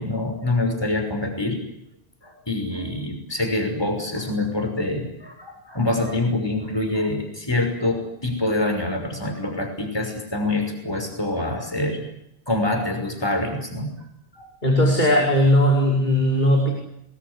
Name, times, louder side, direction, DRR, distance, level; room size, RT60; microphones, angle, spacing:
voice 1, 0.0-1.6 2.2-12.1 12.5-13.9 14.4-14.5, left 2 dB, 25° left, 4 dB, 6.0 m, -25 dB
voice 2, 14.6-16.7, equal, 45° left, -1 dB, 5.8 m, -18 dB
29.5 x 21.0 x 8.4 m, 0.79 s
omnidirectional pair, 1.1 m